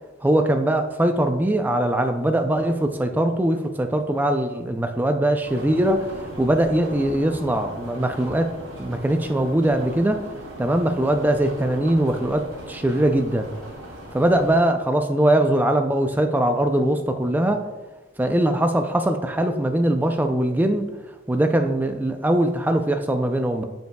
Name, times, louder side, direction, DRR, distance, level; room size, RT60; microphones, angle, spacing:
voice 1, 0.2-6.1 6.4-8.5 8.8-10.2 10.6-13.5 14.1-17.6 18.2-20.9 21.3-23.6, right 1 dB, 10° right, 5 dB, 0.4 m, -21 dB
sound 1, 5.4-14.6, equal, 85° right, 2.6 m, -39 dB
13.5 x 5.3 x 2.2 m, 1.2 s
head